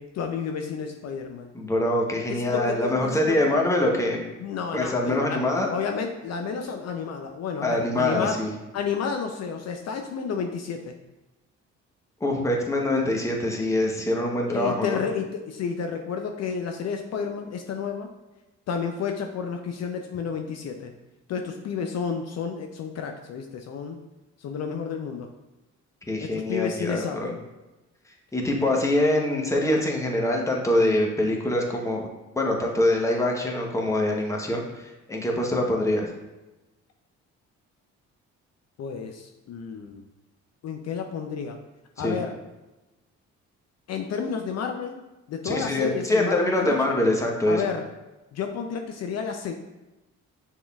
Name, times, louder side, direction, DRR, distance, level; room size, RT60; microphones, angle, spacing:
voice 1, 0.0-1.5 2.3-3.4 4.4-5.4 5.7-8.4 8.7-10.9 14.5-18.1 18.7-20.9 21.3-24.0 24.4-25.3 26.2-27.3 38.8-40.0 40.6-41.6 42.0-42.3 43.9-45.0 45.3-46.8 47.5-47.8 48.3-49.5, left 6 dB, 60° left, 4 dB, 0.5 m, -31 dB
voice 2, 1.5-4.2 4.7-5.7 7.6-8.5 12.2-15.0 26.1-27.3 28.3-32.1 32.4-36.1 42.0-42.2 45.4-47.6, left 1 dB, 10° left, 0 dB, 0.9 m, -24 dB
6.1 x 3.6 x 2.3 m, 1.1 s
cardioid pair, 90°, 30 cm